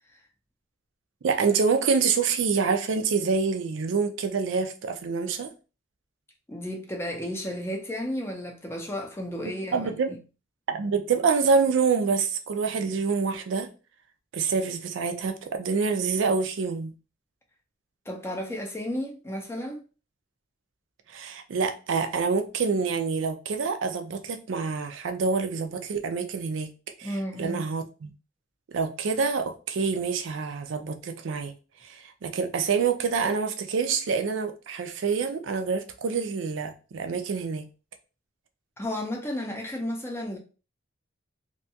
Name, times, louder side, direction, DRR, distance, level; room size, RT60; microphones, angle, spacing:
voice 1, 1.2-5.5 9.7-10.1 10.7-13.7 14.3-16.9 21.1-26.7 27.0-28.1 28.7-31.5 31.8-37.7, right 5 dB, 75° right, 0.4 m, -26 dB
voice 2, 6.5-10.2 18.1-19.8 27.0-27.7 38.8-40.4, left 1 dB, 15° left, 0.5 m, -33 dB
2.6 x 2.2 x 2.7 m
head